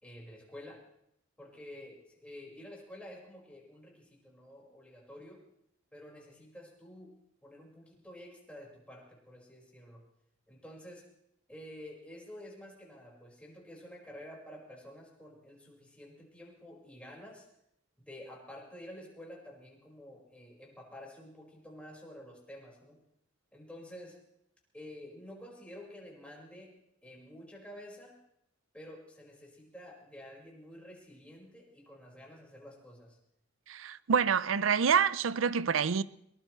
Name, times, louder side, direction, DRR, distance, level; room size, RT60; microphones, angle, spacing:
voice 1, 0.0-0.8 1.4-5.4 5.9-7.1 7.4-10.0 10.5-11.0 11.5-17.5 18.0-23.0 23.5-24.2 24.7-26.7 27.0-28.1 28.7-33.2, left 1 dB, 5° left, 5.2 m, -50 dB
voice 2, 33.7-36.0, right 6 dB, 80° right, 0.6 m, -27 dB
22.5 x 20.0 x 3.2 m
head